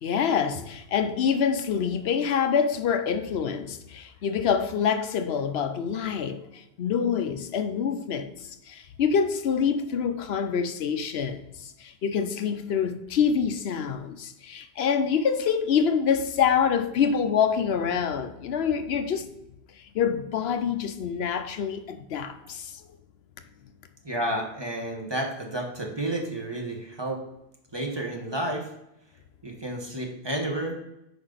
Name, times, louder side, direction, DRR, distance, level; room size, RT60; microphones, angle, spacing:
voice 1, 0.0-19.3 19.7-22.9, left 7 dB, 75° left, 0.9 m, -26 dB
voice 2, 24.0-27.2 27.7-28.7 29.4-30.8, right 1 dB, 25° right, 1.3 m, -31 dB
8.5 x 5.5 x 3.9 m
omnidirectional pair, 1.1 m